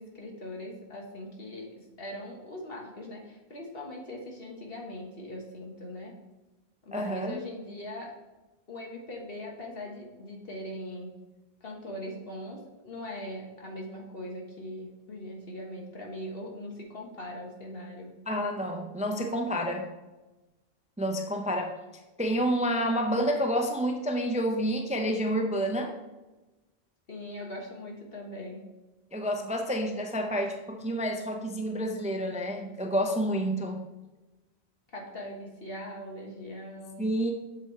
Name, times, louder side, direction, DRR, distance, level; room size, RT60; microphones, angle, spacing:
voice 1, 0.0-6.1 6.8-8.1 8.7-11.1 11.6-18.2 27.1-28.7 34.9-37.1, left 1 dB, 65° left, -1 dB, 1.7 m, -41 dB
voice 2, 6.9-7.4 18.3-19.9 21.0-21.8 22.2-25.9 29.1-33.8 37.0-37.3, equal, 10° right, 3 dB, 0.5 m, -29 dB
8.2 x 6.7 x 3.2 m, 1.1 s
omnidirectional pair, 1.1 m